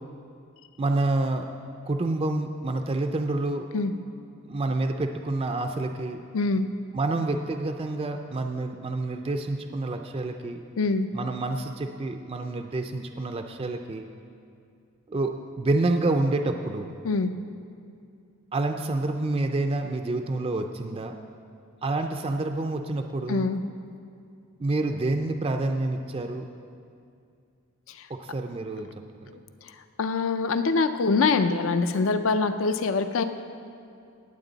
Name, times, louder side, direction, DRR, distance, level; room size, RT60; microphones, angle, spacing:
voice 1, 0.8-1.4 1.8-3.6 4.5-6.2 6.9-10.6 11.1-14.1 15.1-16.9 18.5-21.1 21.8-23.4 24.6-26.4 28.1-28.9 29.2-29.3, right 2 dB, 25° right, 5 dB, 0.4 m, -28 dB
voice 2, 6.3-6.7 10.8-11.1 17.0-17.3 23.3-23.6 29.3-29.4 30.0-33.2, left 4 dB, 65° left, 9 dB, 0.5 m, -24 dB
18.5 x 8.0 x 4.0 m, 2.4 s
head